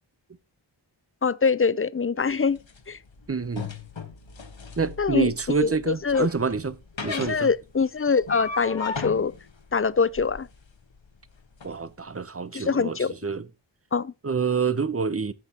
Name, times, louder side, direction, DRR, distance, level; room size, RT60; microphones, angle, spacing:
voice 1, 1.2-2.6 2.9-3.0 5.0-5.3 5.6-6.3 7.1-9.3 9.7-10.5 12.5-13.1 13.9-14.1, left 5 dB, 30° left, 0.4 m, -24 dB
sound 1, 2.2-11.7, left 4 dB, 65° left, 1.3 m, -37 dB
voice 2, 3.3-3.7 4.8-6.8 7.0-7.5 11.6-13.5 14.2-15.3, right 5 dB, 30° right, 0.7 m, -27 dB
14.0 x 6.3 x 2.9 m
wide cardioid pair, 45°, 48 cm